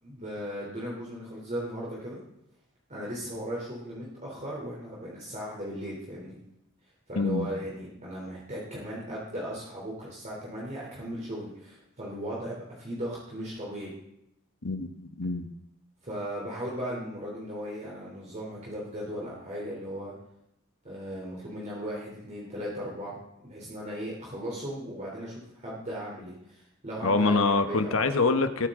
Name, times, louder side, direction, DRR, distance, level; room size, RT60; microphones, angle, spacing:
voice 1, 0.0-2.2 2.9-6.3 7.1-13.9 16.0-20.1 20.8-23.2 23.4-28.1, equal, 35° right, -5 dB, 3.4 m, -37 dB
voice 2, 7.2-7.5 14.6-15.5 27.0-28.7, left 3 dB, 70° left, 8 dB, 1.2 m, -25 dB
20.0 x 9.8 x 3.8 m, 0.81 s
head